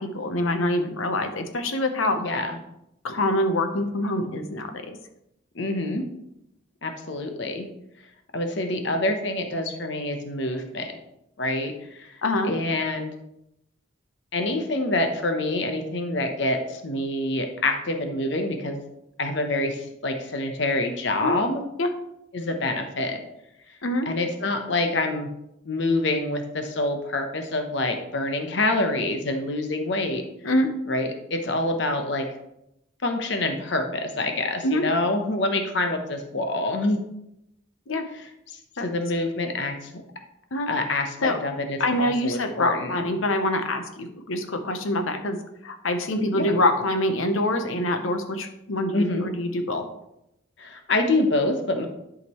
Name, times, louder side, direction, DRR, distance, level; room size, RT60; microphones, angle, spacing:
voice 1, 0.0-2.3 3.0-5.0 12.2-12.5 21.2-21.4 21.8-21.9 23.8-24.1 30.4-30.7 34.6-34.8 37.9-38.0 38.8-38.9 40.5-40.7 41.2-41.4 41.8-45.4 45.6-49.8, left 1 dB, 80° left, 7 dB, 0.9 m, -25 dB
voice 2, 2.1-2.6 5.5-6.0 6.8-7.6 8.3-10.9 11.4-12.1 12.5-13.1 14.3-18.8 19.2-21.6 22.3-23.2 24.1-25.3 25.7-30.2 30.9-32.3 33.0-37.0 38.1-38.3 38.8-39.9 40.7-43.0 46.3-46.5 48.9-49.2 50.6-51.9, left 2 dB, 60° left, 5 dB, 0.9 m, -26 dB
11.0 x 5.1 x 3.1 m, 0.83 s
head